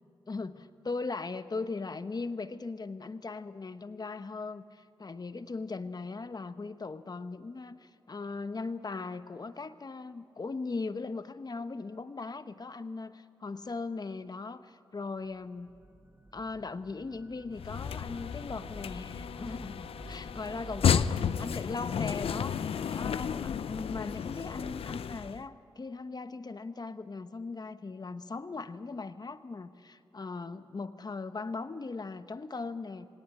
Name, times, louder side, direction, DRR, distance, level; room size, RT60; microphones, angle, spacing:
voice 1, 0.3-15.7 16.3-21.1 21.4-33.1, left 3 dB, 45° left, 11 dB, 1.0 m, -39 dB
sound 1, 15.3-21.8, right 2 dB, 20° right, 0.9 m, -50 dB
sound 2, 17.5-25.4, left 8 dB, 80° left, 0.5 m, -32 dB
18.5 x 18.0 x 9.4 m, 2.4 s
cardioid pair, 50°, 10 cm